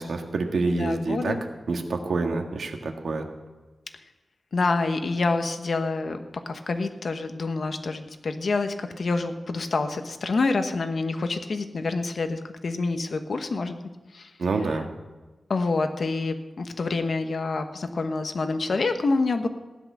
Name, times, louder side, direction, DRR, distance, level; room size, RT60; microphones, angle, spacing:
voice 1, 0.0-1.4 1.7-3.3 14.4-14.9, right 3 dB, 90° right, 4 dB, 1.6 m, -27 dB
voice 2, 0.6-1.4 4.5-13.8 14.1-14.3 15.5-19.5, left 3 dB, 60° left, 7 dB, 1.1 m, -27 dB
15.5 x 10.5 x 6.2 m, 1.2 s
wide cardioid pair, 145°, 0 cm